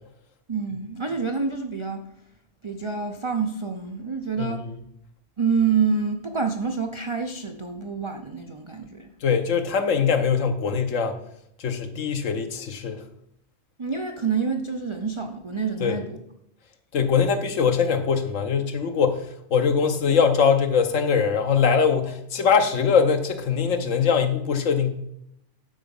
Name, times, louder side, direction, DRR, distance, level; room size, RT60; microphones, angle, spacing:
voice 1, 0.5-2.0 2.6-4.6 5.4-9.1 13.8-16.2, right 5 dB, 35° right, 0.5 m, -27 dB
voice 2, 9.2-11.2 11.6-13.0 15.8-16.0 16.9-24.9, left 6 dB, 85° left, 1.3 m, -22 dB
11.5 x 4.9 x 5.3 m
omnidirectional pair, 1.3 m